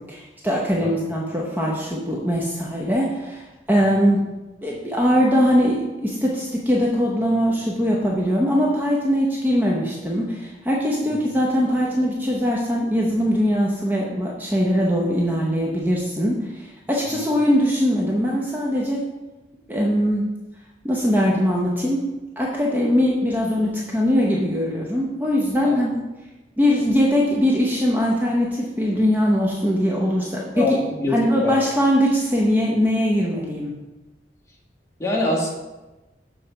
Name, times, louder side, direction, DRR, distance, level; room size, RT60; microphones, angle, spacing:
voice 1, 0.0-4.2 4.6-19.0 19.7-20.3 20.8-22.1 22.4-26.0 26.6-30.7 31.1-33.7, equal, 10° right, -3 dB, 0.7 m, -21 dB
voice 2, 30.5-31.6 35.0-35.5, left 2 dB, 20° left, -4 dB, 1.6 m, -24 dB
6.9 x 4.2 x 5.6 m, 1.1 s
head